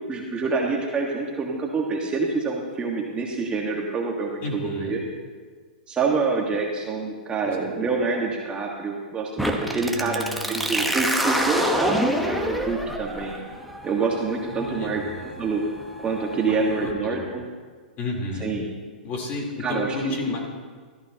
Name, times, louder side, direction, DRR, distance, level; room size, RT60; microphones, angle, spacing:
voice 1, 0.1-5.0 5.9-13.4 13.8-15.0 15.4-15.6 16.0-17.4 18.4-18.7 19.6-20.2, right 4 dB, 20° right, -1 dB, 1.6 m, -26 dB
voice 2, 4.4-5.0 7.4-7.6 9.7-10.8 14.5-15.3 16.4-17.3 18.0-18.5 19.0-20.4, left 3 dB, 35° left, -1 dB, 3.7 m, -32 dB
sound 1, 9.4-16.9, equal, ahead, 1.2 m, -28 dB
15.5 x 13.5 x 3.0 m, 1.5 s
hypercardioid pair, 125°, 5 cm